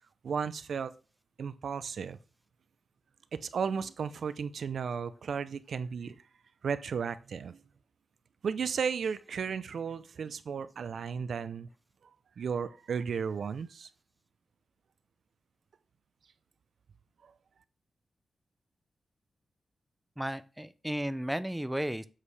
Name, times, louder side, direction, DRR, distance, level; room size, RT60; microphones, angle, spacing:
voice 1, 0.2-0.9 1.4-2.2 3.3-6.2 6.6-7.6 8.4-11.7 12.4-13.9 17.2-17.3, right 6 dB, 70° right, 13 dB, 0.5 m, -34 dB
voice 2, 20.2-22.1, equal, 5° right, 12 dB, 0.4 m, -34 dB
7.4 x 6.4 x 3.3 m, 0.34 s
wide cardioid pair, 160°, 0 cm